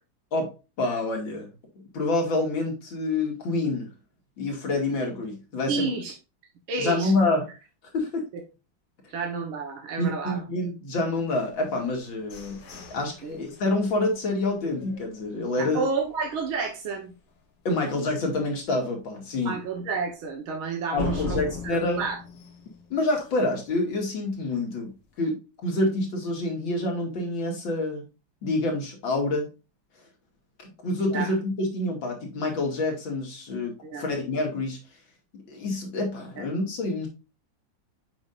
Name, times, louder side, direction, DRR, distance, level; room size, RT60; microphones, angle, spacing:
voice 1, 0.8-1.5 1.9-3.9 4.4-5.9 6.8-7.5 7.9-8.2 10.0-12.6 12.9-15.8 17.6-19.5 20.9-22.0 22.9-24.9 25.2-28.0 28.4-29.5 30.6-33.7 34.0-34.8 35.5-37.1, left 2 dB, 70° left, 1 dB, 2.8 m, -27 dB
voice 2, 5.7-6.1 6.7-7.1 9.1-10.4 13.2-13.4 15.6-17.1 19.5-22.2 31.1-31.3 33.8-34.1, right 4 dB, 80° right, 1 dB, 2.2 m, -30 dB
sound 1, 11.7-15.6 16.0-16.1 16.5-16.9 17.3-17.4 17.9-18.0 21.0-23.6, left 3 dB, 90° left, 2.6 m, -38 dB
7.7 x 5.3 x 2.5 m, 0.29 s
omnidirectional pair, 2.2 m